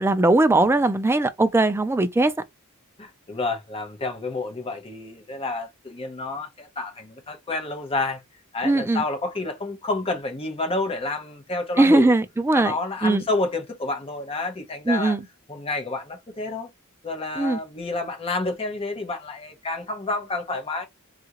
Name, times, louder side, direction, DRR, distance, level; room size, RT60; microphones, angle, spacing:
voice 1, 0.0-2.3 8.6-9.0 11.8-12.7 13.0-13.2 14.9-15.2 17.4-17.6, right 2 dB, 10° right, 0.3 m, -19 dB
voice 2, 3.0-8.2 8.5-12.1 12.5-15.2 15.5-16.7 17.0-20.9, left 2 dB, 25° left, 0.8 m, -29 dB
2.8 x 2.4 x 2.8 m
head